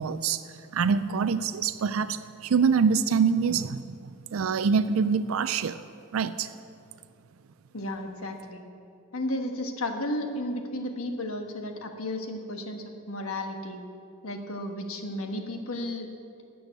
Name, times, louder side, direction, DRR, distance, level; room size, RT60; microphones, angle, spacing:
voice 1, 0.0-5.8 6.1-6.5, right 6 dB, 75° right, 12 dB, 0.4 m, -25 dB
voice 2, 7.7-8.6 9.1-13.8 14.2-16.1, left 1 dB, 90° left, 4 dB, 1.3 m, -33 dB
12.5 x 7.0 x 9.2 m, 2.4 s
head